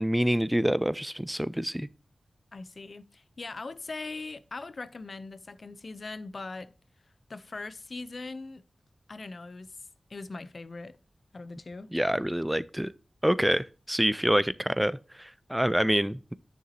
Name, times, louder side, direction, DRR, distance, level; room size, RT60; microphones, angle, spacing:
voice 1, 0.0-1.9 11.9-12.9 13.2-16.3, equal, 5° right, 0.3 m, -26 dB
voice 2, 2.5-6.7 7.3-8.6 9.1-9.8 10.1-11.0 11.3-11.9, left 3 dB, 55° left, 0.6 m, -40 dB
9.3 x 6.7 x 2.8 m
wide cardioid pair, 95°, 0 cm